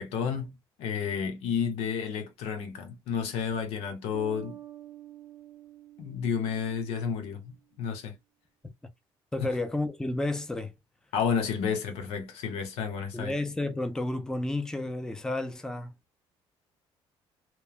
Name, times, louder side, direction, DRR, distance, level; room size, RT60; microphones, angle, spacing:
voice 1, 0.0-4.6 6.0-8.1 11.1-13.3, left 7 dB, 90° left, 0.9 m, -31 dB
sound 1, 4.1-7.5, right 13 dB, 85° right, 0.6 m, -48 dB
voice 2, 9.3-10.7 13.1-15.9, left 2 dB, 5° left, 0.5 m, -31 dB
3.0 x 2.2 x 2.4 m
cardioid pair, 110°, 10 cm